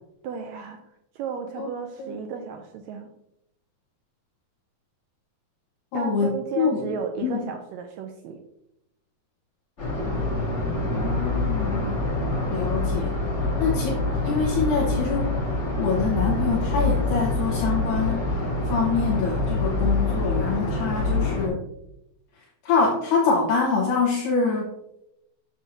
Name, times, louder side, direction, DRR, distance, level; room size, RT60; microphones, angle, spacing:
voice 1, 0.2-0.8 1.1-3.1 5.9-8.4, right 6 dB, 90° right, 5 dB, 1.5 m, -34 dB
voice 2, 5.9-6.7 7.2-7.4 10.9-12.0 12.5-13.2 13.6-15.3 15.8-21.6 22.6-24.7, left 5 dB, 75° left, -3 dB, 2.6 m, -25 dB
sound 1, 9.8-21.5, left 2 dB, 25° left, 1.6 m, -25 dB
7.5 x 7.1 x 2.7 m, 0.83 s
omnidirectional pair, 3.9 m